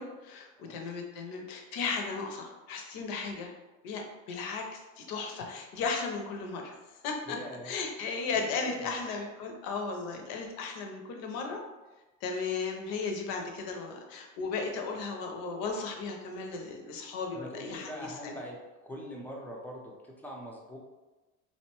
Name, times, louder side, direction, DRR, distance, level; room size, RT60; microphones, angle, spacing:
voice 1, 0.0-3.5 3.8-6.8 7.0-7.4 7.6-11.6 12.2-18.4, left 4 dB, 60° left, 3 dB, 0.6 m, -35 dB
voice 2, 7.3-7.7 8.3-9.0 17.3-18.6 18.8-20.8, equal, 5° left, -2 dB, 0.5 m, -43 dB
2.6 x 2.2 x 2.9 m, 1.2 s
supercardioid pair, 90°, 39 cm